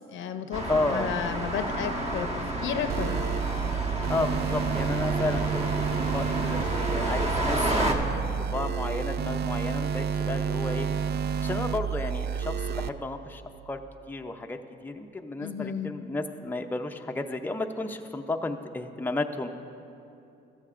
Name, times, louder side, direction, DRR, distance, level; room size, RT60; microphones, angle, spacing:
voice 1, 0.1-3.3 15.4-15.9, left 7 dB, 75° left, 8 dB, 0.7 m, -33 dB
sound 1, 0.5-7.9, right 1 dB, 35° right, 1.2 m, -30 dB
voice 2, 0.7-1.1 4.1-10.9 11.4-13.8 14.1-19.5, left 2 dB, 10° left, 4 dB, 0.5 m, -33 dB
sound 2, 2.9-12.9, right 7 dB, 55° right, 0.4 m, -30 dB
14.0 x 14.0 x 2.5 m, 2.7 s
cardioid pair, 90°, 20 cm